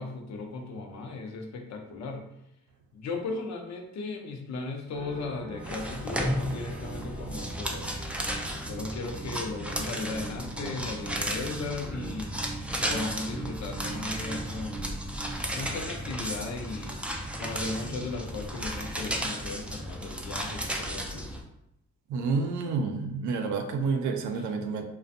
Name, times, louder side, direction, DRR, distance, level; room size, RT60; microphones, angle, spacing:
voice 1, 0.0-2.3 2.9-7.9 8.7-12.3 12.9-14.9 15.5-21.3 24.3-24.4, left 3 dB, 65° left, 3 dB, 0.6 m, -36 dB
sound 1, 4.9-16.7, right 3 dB, 35° right, 0.8 m, -42 dB
sound 2, 5.6-21.4, equal, 5° right, 0.3 m, -34 dB
voice 2, 22.1-24.8, right 4 dB, 75° right, 5 dB, 0.5 m, -29 dB
2.4 x 2.2 x 2.6 m, 0.81 s
cardioid pair, 90°, 30 cm